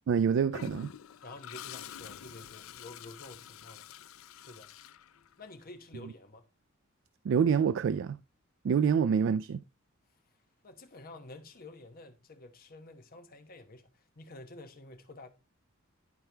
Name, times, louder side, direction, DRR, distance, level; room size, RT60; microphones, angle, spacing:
voice 1, 0.1-0.9 7.2-8.2 8.6-9.6, right 7 dB, 65° right, 0.3 m, -26 dB
Toilet flush, 0.5-5.6, left 9 dB, 75° left, 0.4 m, -47 dB
voice 2, 1.2-3.8 4.3-4.7 5.4-6.4 10.6-15.3, left 2 dB, 45° left, 1.0 m, -50 dB
11.0 x 4.4 x 3.3 m
head